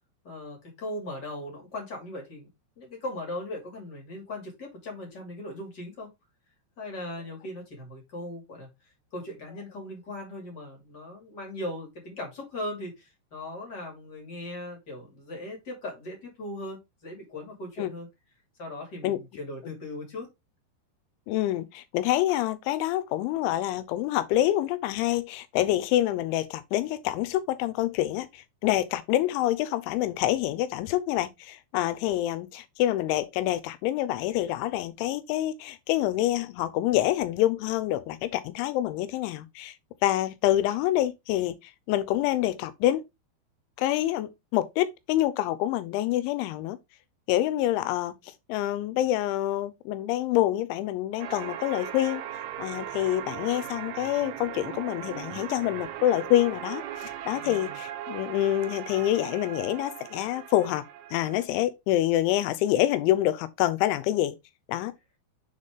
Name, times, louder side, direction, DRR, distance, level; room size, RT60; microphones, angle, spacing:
voice 1, 0.2-2.5 2.8-6.1 6.8-8.7 9.1-18.1 18.6-20.3 31.8-31.9 57.3-57.8, left 1 dB, 30° left, 2.1 m, -38 dB
voice 2, 21.3-39.7 40.0-43.0 43.8-46.8 47.3-48.1 48.5-52.2 52.6-60.8 61.1-64.4 64.7-64.9, left 14 dB, 90° left, 3.1 m, -26 dB
sound 1, 51.2-61.5, right 11 dB, 90° right, 3.0 m, -38 dB
7.1 x 4.0 x 3.7 m
omnidirectional pair, 5.3 m